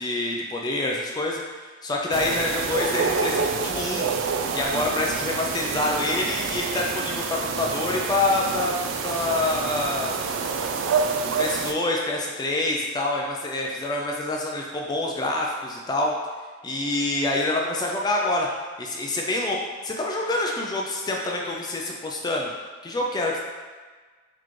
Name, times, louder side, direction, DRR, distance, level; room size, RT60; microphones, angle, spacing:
voice 1, 0.0-4.1 4.5-8.7 9.0-10.1 11.4-16.1 16.6-18.5 18.8-19.6 19.8-22.5 22.8-23.4, left 2 dB, 20° left, -1 dB, 0.3 m, -26 dB
sound 1, 2.1-11.7, right 5 dB, 80° right, 0.3 m, -27 dB
4.0 x 2.9 x 3.1 m, 1.4 s
head